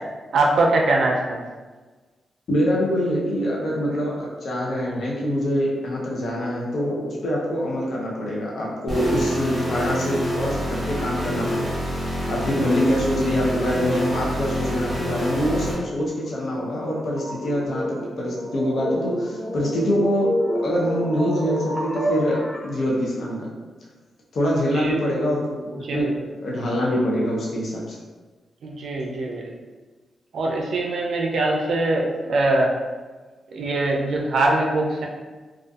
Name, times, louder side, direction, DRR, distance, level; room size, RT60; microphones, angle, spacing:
voice 1, 0.3-1.4 24.5-24.9 25.8-26.1 28.6-29.5 30.3-32.7 33.5-35.1, right 2 dB, 75° right, 0 dB, 0.4 m, -22 dB
voice 2, 2.5-11.8 12.3-20.3 20.6-23.5 24.3-26.0 26.4-28.0, equal, 65° left, -4 dB, 0.5 m, -24 dB
sound 1, 8.9-15.7, equal, 5° left, 1.2 m, -27 dB
sound 2, 15.8-22.7, equal, 15° right, 0.5 m, -29 dB
2.5 x 2.3 x 2.3 m, 1.3 s
cardioid pair, 95°, 0 cm